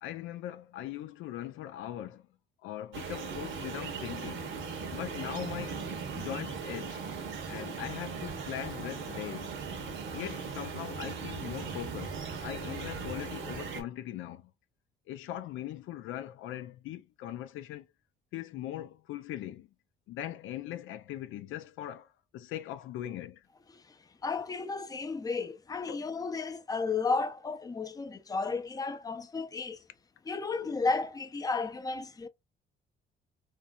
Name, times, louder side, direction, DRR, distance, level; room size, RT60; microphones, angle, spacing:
voice 1, 0.0-2.2 2.6-4.5 4.9-5.8 6.1-7.0 7.5-9.5 10.1-14.5 15.1-17.9 18.3-19.7 20.1-22.1 22.3-23.4 25.9-26.0, left 12 dB, 85° left, 0.4 m, -40 dB
sound 1, 2.9-13.8, right 5 dB, 75° right, 0.9 m, -38 dB
voice 2, 23.7-29.8 30.2-32.3, left 4 dB, 20° left, 0.5 m, -33 dB
3.0 x 2.6 x 2.2 m
cardioid pair, 90°, 20 cm